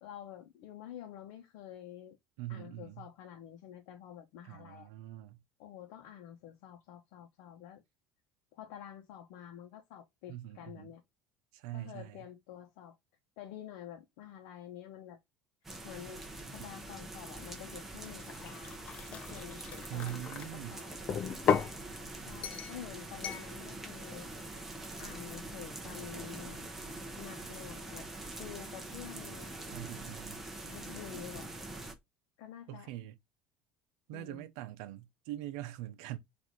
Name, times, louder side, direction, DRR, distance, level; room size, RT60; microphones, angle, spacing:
voice 1, 0.0-2.2 2.5-4.9 5.6-7.8 8.5-11.0 11.7-13.0 13.4-15.2 15.8-16.2 16.5-18.7 19.1-20.9 22.2-24.3 25.0-26.6 27.2-28.1 28.4-29.5 30.6-31.5 32.4-32.9 34.1-34.5, left 10 dB, 70° left, 0.9 m, -48 dB
voice 2, 2.4-3.1 4.4-5.4 10.3-10.9 11.5-12.2 19.9-20.8 29.7-30.4 32.7-33.2 34.1-36.2, right 14 dB, 75° right, 0.6 m, -43 dB
sound 1, 15.6-31.9, right 2 dB, 10° right, 0.8 m, -44 dB
sound 2, 18.2-20.5 21.1-21.8 22.4-22.8 23.2-23.5, left 7 dB, 30° left, 0.4 m, -34 dB
4.1 x 2.6 x 4.6 m
cardioid pair, 165°, 4 cm